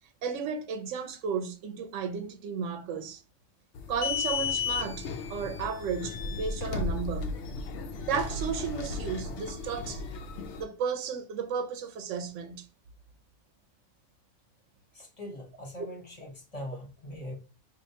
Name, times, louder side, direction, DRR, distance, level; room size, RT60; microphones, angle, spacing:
voice 1, 0.2-3.2 3.9-7.3 8.1-10.0 10.6-12.7, right 6 dB, 90° right, 1.0 m, -33 dB
sound 1, 3.7-10.6, left 5 dB, 70° left, 0.9 m, -34 dB
voice 2, 14.9-17.3, left 1 dB, 30° left, 1.2 m, -41 dB
4.6 x 2.5 x 2.7 m
omnidirectional pair, 1.2 m